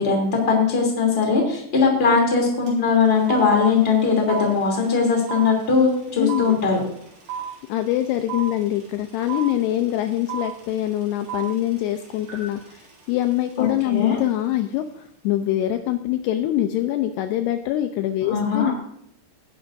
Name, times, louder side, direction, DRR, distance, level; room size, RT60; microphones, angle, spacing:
voice 1, 0.0-6.8 13.6-14.2 18.2-18.7, left 5 dB, 15° left, 1 dB, 2.1 m, -20 dB
sound 1, 2.7-2.8 3.0-14.1, right 8 dB, 80° right, 6.6 m, -35 dB
voice 2, 6.2-6.6 7.7-18.7, left 13 dB, 85° left, 7 dB, 2.5 m, -24 dB
18.0 x 11.0 x 2.6 m, 0.73 s
omnidirectional pair, 5.3 m